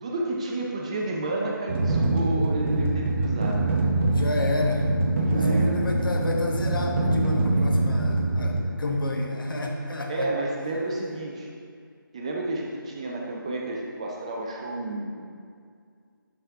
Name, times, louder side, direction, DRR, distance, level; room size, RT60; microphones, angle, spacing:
voice 1, 0.0-3.9 5.2-5.8 10.1-11.5 12.1-15.2, right 2 dB, 15° right, -2 dB, 0.4 m, -31 dB
sound 1, 1.7-8.6, right 2 dB, 35° right, 0.8 m, -24 dB
voice 2, 4.1-4.9 5.2-10.3, left 2 dB, 70° left, 1 dB, 1.2 m, -29 dB
7.0 x 6.1 x 3.5 m, 2.2 s
figure-of-eight pair, 160°, 12 cm